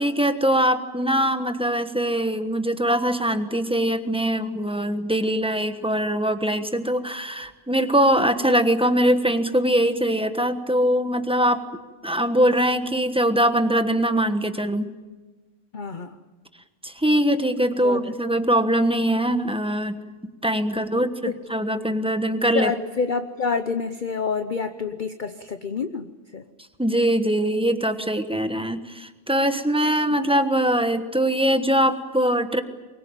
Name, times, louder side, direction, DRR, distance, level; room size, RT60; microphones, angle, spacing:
voice 1, 0.0-11.6 12.0-14.9 16.8-20.0 20.4-22.7 26.8-32.6, right 1 dB, 5° right, 8 dB, 1.1 m, -22 dB
voice 2, 15.7-16.2 17.8-18.4 21.0-21.4 22.5-26.4, left 5 dB, 40° left, 9 dB, 0.9 m, -28 dB
24.0 x 21.5 x 9.0 m, 1.2 s
omnidirectional pair, 1.6 m